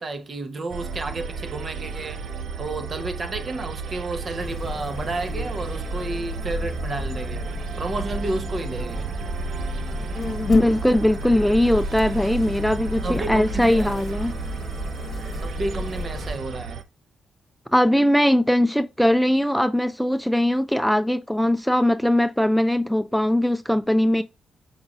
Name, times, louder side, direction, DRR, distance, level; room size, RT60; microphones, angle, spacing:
voice 1, 0.0-2.3 2.6-9.1 13.0-14.0 15.4-16.8, right 2 dB, 45° right, 0.7 m, -31 dB
sound 1, 0.7-16.8, right 5 dB, 75° right, 0.4 m, -33 dB
sound 2, 4.4-16.4, left 2 dB, 40° left, 1.0 m, -31 dB
voice 2, 10.5-14.3 17.7-24.2, left 1 dB, ahead, 0.3 m, -20 dB
5.1 x 3.9 x 2.3 m
supercardioid pair, 60°, 0 cm